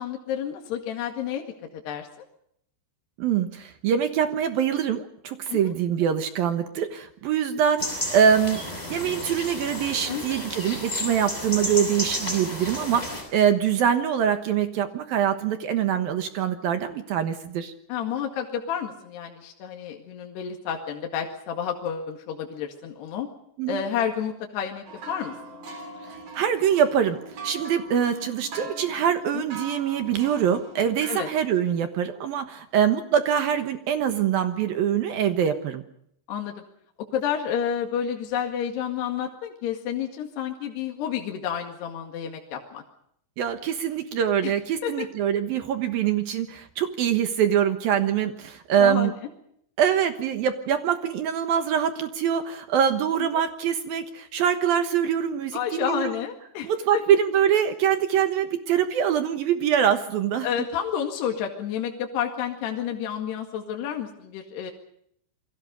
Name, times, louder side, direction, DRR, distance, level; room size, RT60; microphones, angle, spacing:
voice 1, 0.0-1.4 1.7-2.1 5.5-5.7 10.1-10.3 12.8-12.9 17.9-23.3 23.7-25.3 29.3-29.4 31.1-31.3 36.3-36.5 37.1-42.8 44.4-44.5 44.8-45.1 48.8-49.2 53.2-53.3 55.5-57.0 60.4-64.7, left 8 dB, 65° left, 2 dB, 3.9 m, -30 dB
voice 2, 3.2-8.6 8.9-17.7 23.6-23.8 26.3-27.2 27.4-35.8 43.4-49.1 49.8-56.1 56.6-60.5, right 8 dB, 65° right, 8 dB, 2.6 m, -24 dB
sound 1, 7.8-13.2, left 1 dB, 10° left, 6.4 m, -32 dB
sound 2, 24.9-31.7, right 3 dB, 45° right, 5.5 m, -41 dB
28.5 x 22.0 x 5.3 m, 0.69 s
omnidirectional pair, 5.3 m